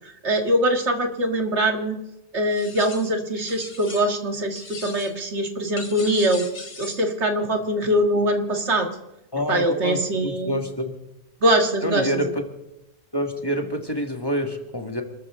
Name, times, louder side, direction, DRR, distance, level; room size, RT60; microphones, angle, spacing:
voice 1, 0.0-2.0 2.3-6.5 6.8-8.9 9.5-10.6 11.4-12.3, right 1 dB, 75° right, 4 dB, 2.2 m, -23 dB
sound 1, 2.5-3.2 3.5-4.3 4.5-5.3 5.8-7.1, left 3 dB, 55° left, 2.0 m, -39 dB
voice 2, 9.3-10.9 11.8-12.4 13.1-15.0, equal, 20° left, 4 dB, 1.8 m, -27 dB
27.0 x 13.5 x 3.7 m, 0.92 s
omnidirectional pair, 1.2 m